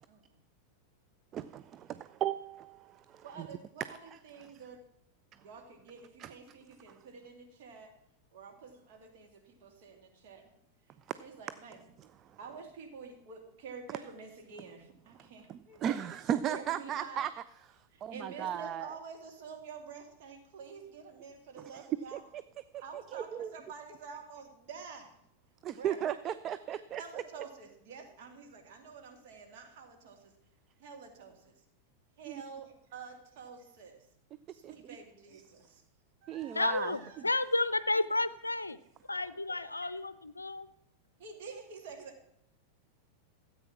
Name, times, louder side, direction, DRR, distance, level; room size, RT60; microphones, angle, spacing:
voice 1, 1.3-3.5 4.1-4.2 6.2-6.3 11.1-11.2 15.5-17.3 17.7-18.9 21.6-22.4 22.9-23.5 25.6-27.2 32.3-32.4 34.6-34.7 36.3-36.9, right 10 dB, 30° right, 14 dB, 0.4 m, -36 dB
voice 2, 3.2-4.8 5.4-7.9 8.3-10.5 11.2-11.8 12.4-16.0 16.4-17.3 17.9-22.2 22.8-25.1 25.7-26.0 26.3-26.4 26.7-30.3 30.8-31.5 32.2-34.1 34.5-35.8 36.2-37.3 39.0-39.9 41.2-42.3, right 5 dB, 50° right, 3 dB, 2.1 m, -49 dB
voice 3, 36.5-38.8 39.1-40.7, left 2 dB, 80° left, 16 dB, 0.5 m, -31 dB
13.5 x 8.2 x 5.9 m, 0.77 s
figure-of-eight pair, 90°, 0 cm